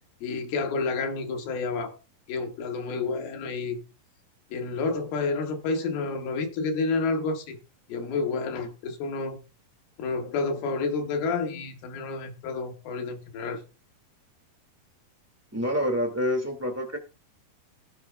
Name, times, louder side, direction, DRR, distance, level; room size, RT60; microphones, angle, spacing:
voice 1, 0.2-2.0 2.3-3.8 4.5-7.6 7.9-9.4 10.0-13.6, left 4 dB, 85° left, 3.6 m, -29 dB
voice 2, 15.5-17.0, equal, 15° right, 0.5 m, -27 dB
18.0 x 8.1 x 2.3 m
omnidirectional pair, 4.2 m